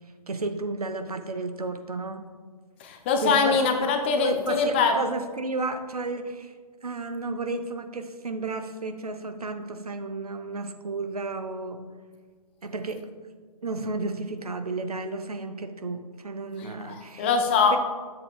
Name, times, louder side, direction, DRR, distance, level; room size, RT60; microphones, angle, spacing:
voice 1, 0.3-2.2 3.2-3.6 4.2-6.5 6.8-11.8 12.6-13.1 13.6-17.3 17.7-17.8, right 3 dB, 70° right, 7 dB, 0.8 m, -32 dB
voice 2, 2.8-4.9 16.6-17.8, left 5 dB, 20° left, 5 dB, 0.4 m, -23 dB
9.8 x 7.5 x 2.5 m, 1.5 s
figure-of-eight pair, 130°, 20 cm